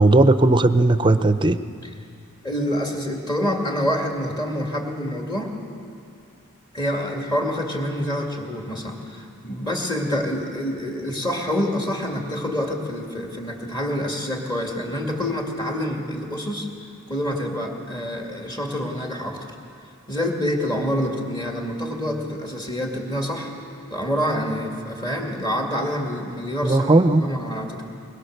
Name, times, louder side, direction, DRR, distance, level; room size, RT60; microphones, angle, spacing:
voice 1, 0.0-1.6 26.6-27.2, right 2 dB, 25° right, 11 dB, 0.6 m, -16 dB
voice 2, 2.4-5.5 6.7-16.7 17.1-19.5 20.1-23.5 23.9-27.8, equal, 20° left, 1 dB, 2.4 m, -27 dB
22.5 x 21.5 x 6.6 m, 2.5 s
head